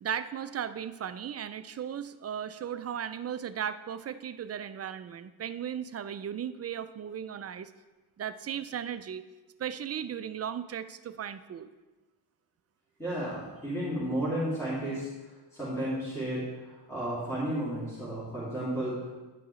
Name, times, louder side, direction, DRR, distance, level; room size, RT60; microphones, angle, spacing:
voice 1, 0.0-7.7 8.2-9.2 9.6-11.7, right 8 dB, 35° right, 12 dB, 0.4 m, -36 dB
voice 2, 13.0-15.1 15.5-19.1, right 1 dB, 5° left, -10 dB, 2.6 m, -33 dB
9.9 x 5.8 x 3.2 m, 1.2 s
cardioid pair, 85°, 44 cm